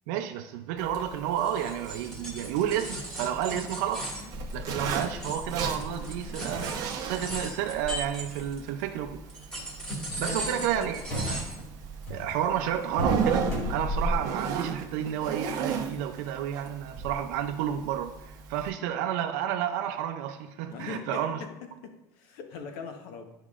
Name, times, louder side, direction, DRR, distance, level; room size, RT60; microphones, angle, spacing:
voice 1, 0.1-4.1 4.5-9.2 10.2-11.5 12.1-21.4, right 10 dB, 85° right, 5 dB, 0.5 m, -31 dB
Zipper (clothing), 0.8-18.7, right 7 dB, 45° right, 0.9 m, -36 dB
sound 1, 1.4-8.8 9.3-11.6, right 1 dB, 10° left, 1.9 m, -38 dB
sound 2, 4.3-9.4 9.8-14.1, left 1 dB, 25° left, 2.3 m, -37 dB
voice 2, 9.9-11.0 20.7-23.3, left 5 dB, 70° left, 5 dB, 1.0 m, -42 dB
11.5 x 5.0 x 2.4 m, 0.93 s
cardioid pair, 175°, 9 cm